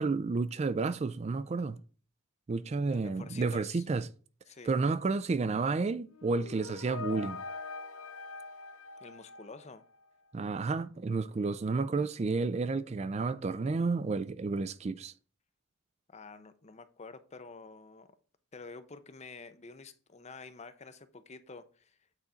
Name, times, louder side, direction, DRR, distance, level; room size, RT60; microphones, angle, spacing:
voice 1, 0.0-1.8 2.5-4.1 4.7-7.4 10.3-15.1, right 4 dB, 30° right, 0.3 m, -31 dB
voice 2, 2.8-3.9 4.5-4.7 9.0-9.8 16.1-18.1 18.5-22.0, left 4 dB, 35° left, 0.6 m, -49 dB
sound 1, 6.1-10.0, left 4 dB, 75° left, 0.6 m, -43 dB
8.2 x 4.1 x 5.0 m
head